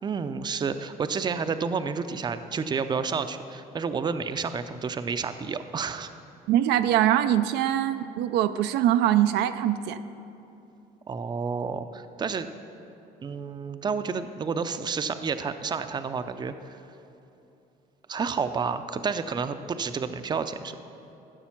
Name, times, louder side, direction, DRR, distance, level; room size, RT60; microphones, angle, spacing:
voice 1, 0.0-6.1 11.1-12.5 13.2-16.8 18.1-20.8, right 5 dB, 25° right, 10 dB, 0.5 m, -30 dB
voice 2, 6.5-10.0, right 12 dB, 80° right, 10 dB, 0.5 m, -23 dB
14.5 x 6.8 x 5.9 m, 2.8 s
cardioid pair, 110°, 17 cm